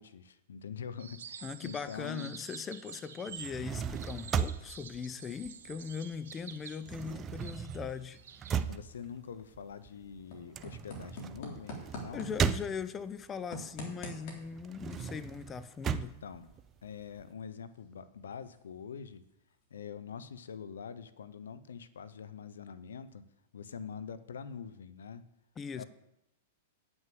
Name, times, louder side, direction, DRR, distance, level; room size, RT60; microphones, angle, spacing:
voice 1, 0.0-2.3 8.7-12.3 16.0-16.5 16.8-19.2 19.7-23.2 23.5-25.3 25.7-25.8, left 6 dB, 80° left, 14 dB, 0.7 m, -45 dB
sound 1, 1.0-8.6, right 7 dB, 75° right, 1.2 m, -49 dB
voice 2, 1.4-8.2 12.1-16.1 25.6-25.8, left 6 dB, 20° left, 13 dB, 0.6 m, -40 dB
sound 2, 3.3-6.1 6.4-13.2 13.7-17.2, right 7 dB, 25° right, 0.5 m, -37 dB
sound 3, 8.2-19.9, equal, 55° left, 3.3 m, -50 dB
9.0 x 6.2 x 7.7 m, 0.82 s
hypercardioid pair, 115°, 0 cm